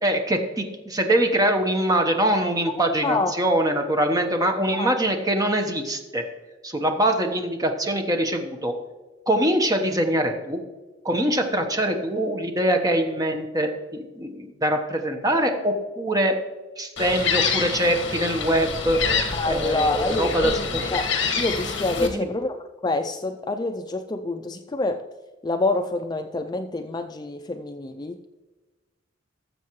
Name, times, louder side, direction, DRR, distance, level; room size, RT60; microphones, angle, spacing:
voice 1, 0.0-6.2 6.6-8.7 9.3-10.6 11.0-16.4 16.8-19.0 19.5-20.8 22.0-22.3, right 1 dB, 20° right, 4 dB, 1.1 m, -23 dB
Gull seagull, 17.0-22.1, left 5 dB, 70° left, 1.4 m, -27 dB
voice 2, 19.3-25.0 25.4-28.2, left 2 dB, 20° left, 7 dB, 0.4 m, -27 dB
18.5 x 7.4 x 3.1 m, 1.2 s
head